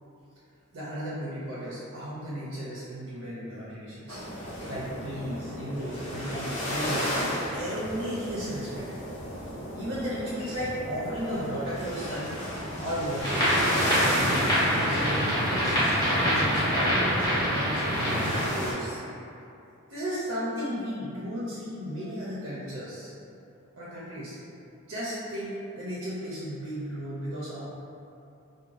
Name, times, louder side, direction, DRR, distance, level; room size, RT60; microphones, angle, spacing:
voice 1, 0.7-4.2 4.6-8.8 9.7-12.4 12.8-14.6 14.9-19.0 19.9-23.1 23.8-24.4 24.9-27.7, equal, 50° right, -8 dB, 0.4 m, -35 dB
sound 1, 4.1-18.7, equal, 85° left, 0.8 m, -34 dB
sound 2, 13.2-18.4, equal, 15° left, 0.7 m, -25 dB
3.0 x 2.1 x 2.4 m, 2.7 s
head